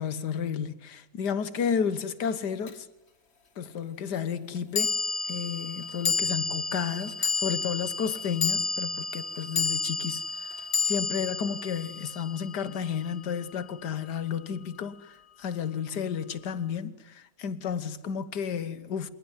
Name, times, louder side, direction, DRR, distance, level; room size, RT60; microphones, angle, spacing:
voice 1, 0.0-2.9 3.6-5.0 5.3-10.5 10.8-19.1, left 7 dB, 70° left, 1.8 m, -32 dB
sound 1, 2.7-2.8 4.7-13.2, left 4 dB, 40° left, 1.7 m, -31 dB
27.5 x 19.5 x 9.8 m
omnidirectional pair, 1.8 m